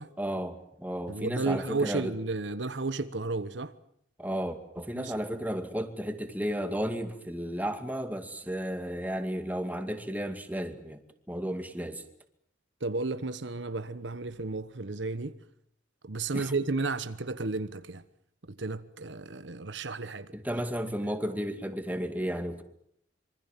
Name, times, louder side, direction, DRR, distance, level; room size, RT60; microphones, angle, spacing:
voice 1, 0.2-2.1 4.2-11.0 11.3-12.0 16.3-16.5 20.3-22.6, equal, 10° right, 2.2 m, -33 dB
voice 2, 1.1-3.7 4.9-5.1 12.8-15.4 16.0-18.0 18.6-20.3, right 3 dB, 65° right, 1.1 m, -33 dB
26.5 x 24.5 x 7.4 m
head